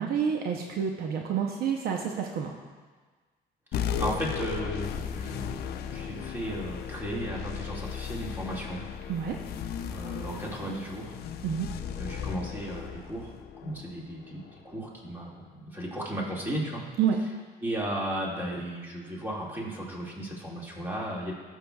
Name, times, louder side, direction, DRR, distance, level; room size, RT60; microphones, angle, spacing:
voice 1, 0.0-2.5 9.1-9.4 11.4-11.7 17.0-17.2, right 7 dB, 65° right, 2 dB, 0.7 m, -28 dB
sound 1, 3.7-14.6, left 8 dB, 70° left, 0.5 m, -36 dB
voice 2, 3.7-8.8 9.9-11.2 12.0-16.9 17.6-21.3, right 1 dB, 10° right, -4 dB, 2.0 m, -35 dB
14.5 x 6.3 x 2.3 m, 1.4 s
cardioid pair, 110°, 17 cm